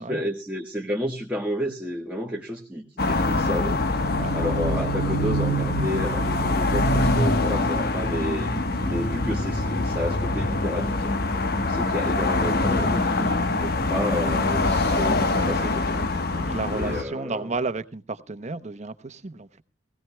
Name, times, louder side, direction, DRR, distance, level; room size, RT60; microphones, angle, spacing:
voice 1, 0.0-3.8 4.1-11.2 11.4-16.1 16.7-17.5, equal, 10° right, 1.4 m, -31 dB
sound 1, 3.0-17.0, left 2 dB, 55° left, 1.2 m, -24 dB
voice 2, 16.3-19.6, right 3 dB, 40° right, 0.9 m, -33 dB
20.5 x 17.0 x 2.2 m
head